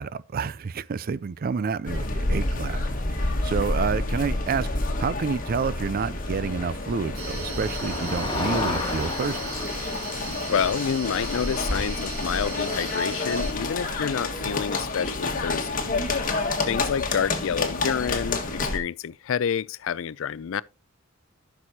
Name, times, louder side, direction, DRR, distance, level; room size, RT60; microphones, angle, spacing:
voice 1, 0.0-2.9 3.1-4.7 5.0-9.4, right 5 dB, 45° right, 0.4 m, -29 dB
sound 1, 1.8-18.8, left 2 dB, 40° left, 1.6 m, -29 dB
Motor vehicle (road), 6.4-14.2, left 2 dB, 25° left, 1.9 m, -35 dB
sound 2, 7.2-13.5, right 4 dB, 90° right, 3.4 m, -38 dB
voice 2, 10.5-15.9 16.7-20.6, left 7 dB, 70° left, 0.4 m, -28 dB
14.0 x 6.2 x 2.8 m
head